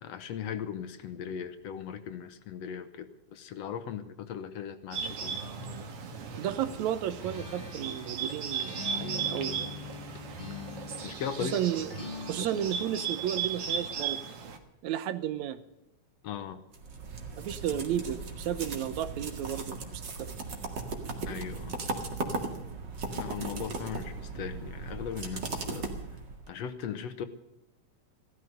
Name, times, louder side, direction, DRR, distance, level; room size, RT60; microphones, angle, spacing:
voice 1, 0.0-5.4 11.0-11.6 16.2-16.6 21.3-21.8 23.1-25.9 26.5-27.2, left 8 dB, 65° left, 11 dB, 1.9 m, -38 dB
Bird, 4.9-14.6, right 7 dB, 55° right, 2.5 m, -36 dB
voice 2, 6.4-9.8 11.4-11.9 12.2-14.2 14.8-15.6 17.4-20.3, right 10 dB, 75° right, 13 dB, 2.0 m, -33 dB
Acoustic guitar, 7.2-11.3 11.9-13.5, left 4 dB, 20° left, 1.6 m, -43 dB
sound 1, 16.7-26.5, right 3 dB, 40° right, 2.3 m, -37 dB
16.0 x 13.0 x 6.5 m, 0.91 s
omnidirectional pair, 3.5 m